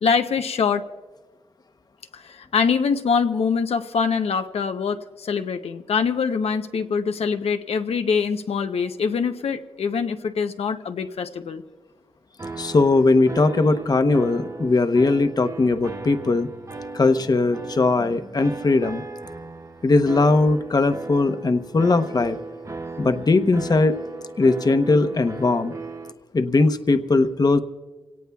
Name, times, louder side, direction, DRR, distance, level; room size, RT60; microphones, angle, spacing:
voice 1, 0.0-0.8 2.1-11.6, left 5 dB, 90° left, 7 dB, 0.6 m, -24 dB
sound 1, 12.4-26.1, right 3 dB, 30° right, 0.6 m, -37 dB
voice 2, 12.6-16.5 16.9-19.0 19.8-22.4 23.0-24.0 24.4-25.7 26.3-27.6, left 3 dB, 40° left, 9 dB, 0.8 m, -19 dB
26.5 x 17.5 x 2.3 m, 1.3 s
wide cardioid pair, 95°, 10 cm